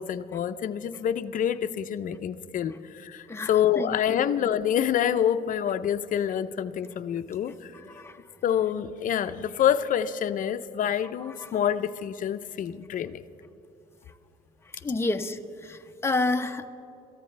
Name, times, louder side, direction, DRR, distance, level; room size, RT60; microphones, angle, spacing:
voice 1, 0.0-7.7 8.4-13.2, left 9 dB, 50° left, 11 dB, 0.6 m, -27 dB
voice 2, 3.3-4.2 7.9-8.2 11.2-11.5 14.8-16.7, left 2 dB, 15° left, 6 dB, 0.8 m, -30 dB
27.0 x 14.5 x 3.3 m, 2.8 s
cardioid pair, 110°, 17 cm